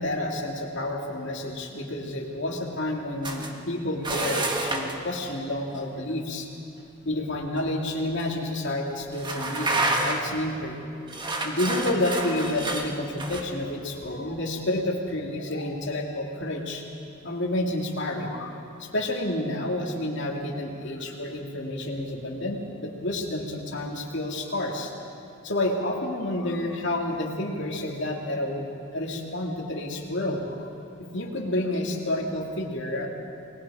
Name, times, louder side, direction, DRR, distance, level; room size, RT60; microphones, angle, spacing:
voice 1, 0.0-6.5 7.0-10.8 11.3-16.8 17.2-24.9 25.4-30.7 31.0-33.1, left 1 dB, 55° left, 0 dB, 2.7 m, -30 dB
sound 1, 3.2-3.5 4.0-5.0 7.6-7.7 8.2-8.3 9.1-10.4 11.1-13.4, right 2 dB, 20° right, 1.6 m, -29 dB
29.5 x 20.0 x 5.0 m, 2.7 s
head